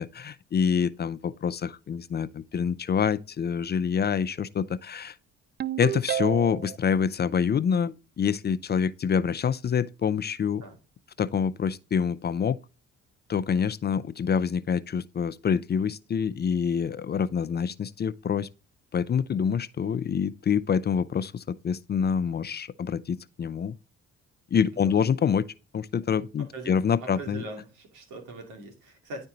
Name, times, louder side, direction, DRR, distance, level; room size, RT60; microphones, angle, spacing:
voice 1, 0.0-5.2 5.8-10.6 11.2-12.6 13.3-18.5 18.9-23.7 24.5-25.5 25.7-27.4, left 7 dB, 35° left, 0.4 m, -26 dB
Ringtone, 5.6-6.8, right 11 dB, 35° right, 0.4 m, -30 dB
voice 2, 26.4-26.7 27.0-29.3, right 2 dB, 90° right, 2.5 m, -41 dB
10.5 x 4.4 x 3.9 m
cardioid pair, 90°, 30 cm